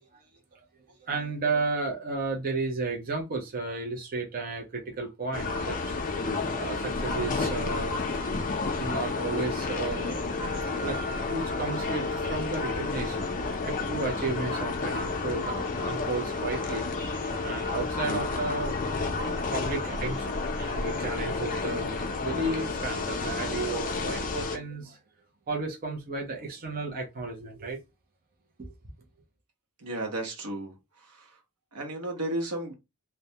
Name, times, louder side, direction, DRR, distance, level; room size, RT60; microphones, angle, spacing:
voice 1, 1.1-6.0 6.5-8.0 8.8-16.8 17.3-18.7 19.0-25.0 25.5-27.8 28.6-28.7, right 3 dB, 40° right, 0.5 m, -33 dB
sound 1, 5.3-24.6, left 3 dB, 40° left, 0.4 m, -31 dB
voice 2, 29.8-30.7 31.2-31.3 31.7-32.7, right 1 dB, 90° right, 0.8 m, -33 dB
2.2 x 2.1 x 2.7 m
head